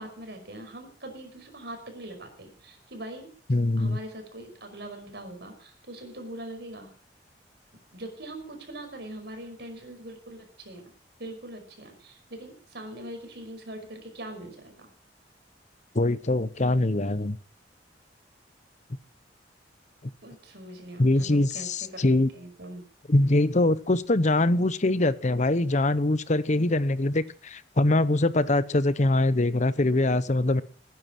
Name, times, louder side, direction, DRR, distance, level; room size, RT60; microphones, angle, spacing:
voice 1, 0.0-3.3 3.8-6.9 7.9-10.9 11.2-14.9 20.2-21.7 21.9-22.8, right 1 dB, 65° right, 5 dB, 5.5 m, -42 dB
voice 2, 3.5-4.0 15.9-17.4 21.0-22.3 23.1-30.6, left 2 dB, 40° left, 16 dB, 0.9 m, -23 dB
19.0 x 10.5 x 6.1 m, 0.43 s
head